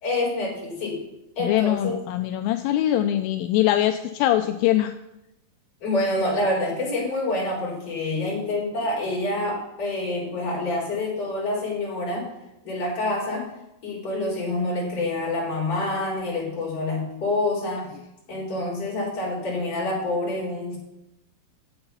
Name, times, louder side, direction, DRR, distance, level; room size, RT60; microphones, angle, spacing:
voice 1, 0.0-1.0 1.4-2.0 5.8-12.2 12.6-13.5 13.8-17.9 18.3-20.8, left 2 dB, 45° left, -4 dB, 4.6 m, -27 dB
voice 2, 1.4-4.9, left 13 dB, 85° left, 7 dB, 2.3 m, -22 dB
8.8 x 7.9 x 5.6 m, 0.89 s
omnidirectional pair, 4.1 m